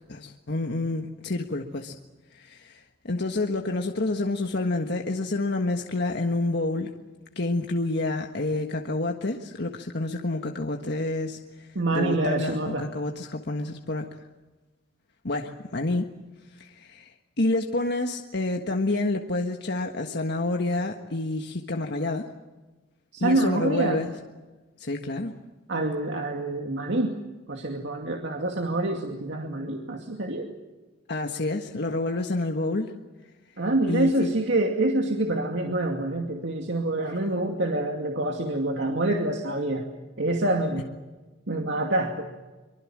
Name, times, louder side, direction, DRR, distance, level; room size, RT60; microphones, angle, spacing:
voice 1, 0.1-1.9 2.3-6.9 7.3-14.1 15.2-16.1 16.5-17.1 17.4-22.3 23.2-24.1 24.8-25.3 31.1-32.9 33.9-34.3, left 2 dB, 60° left, 3 dB, 1.6 m, -28 dB
voice 2, 11.7-12.9 23.1-24.0 25.7-27.1 27.5-30.5 33.6-39.9 40.2-40.9 41.5-42.3, right 2 dB, 70° right, 2 dB, 2.4 m, -26 dB
24.5 x 24.0 x 7.5 m, 1.2 s
head